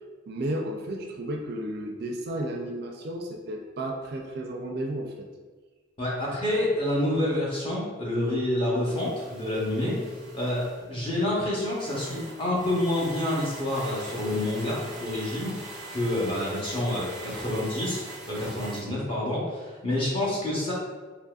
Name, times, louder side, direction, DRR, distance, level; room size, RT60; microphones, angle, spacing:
voice 1, 0.3-5.3, right 1 dB, 50° right, 1 dB, 0.4 m, -33 dB
voice 2, 6.0-10.1 10.3-15.5 15.9-20.7, left 1 dB, 25° left, -6 dB, 0.9 m, -28 dB
sound 1, 8.9-18.8, right 2 dB, 5° right, 0.7 m, -42 dB
3.9 x 2.9 x 2.4 m, 1.4 s
head